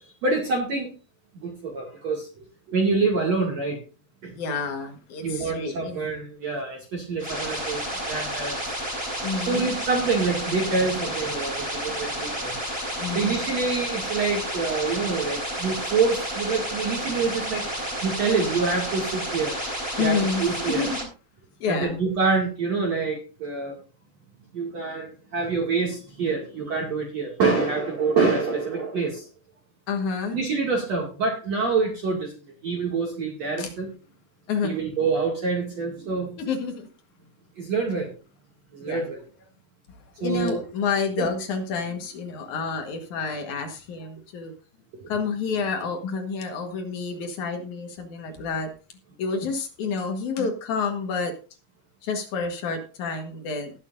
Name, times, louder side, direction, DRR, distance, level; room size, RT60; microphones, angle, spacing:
voice 1, 0.2-0.9 1.4-3.8 4.2-4.4 5.2-8.8 9.5-12.6 13.1-17.7 18.0-19.6 20.0-20.9 21.7-23.8 24.5-29.3 30.3-33.9 34.6-36.4 37.6-38.1 38.7-39.2 40.2-40.6 41.2-41.3 44.9-45.1, right 4 dB, 45° right, -1 dB, 2.5 m, -26 dB
voice 2, 4.4-6.1 9.2-9.7 13.0-13.3 20.0-21.1 21.6-22.0 29.9-30.4 33.6-33.7 34.5-34.8 36.4-36.9 38.8-39.0 40.2-44.5 45.1-48.7 49.2-51.3 52.0-53.7, left 5 dB, 70° left, 4 dB, 1.8 m, -29 dB
sound 1, 7.2-21.0, right 1 dB, 10° right, 3.8 m, -31 dB
20.0 x 8.3 x 2.5 m, 0.34 s
omnidirectional pair, 5.6 m